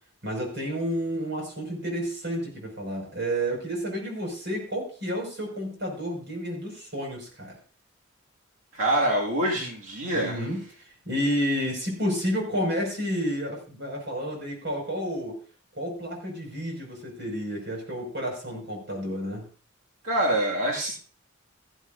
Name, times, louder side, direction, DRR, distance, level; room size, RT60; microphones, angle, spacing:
voice 1, 0.2-7.6 10.1-15.4 15.7-19.5, equal, 60° right, 1 dB, 5.7 m, -30 dB
voice 2, 8.7-10.4 20.0-20.9, right 1 dB, 85° right, -4 dB, 2.2 m, -25 dB
15.5 x 12.0 x 2.6 m, 0.39 s
head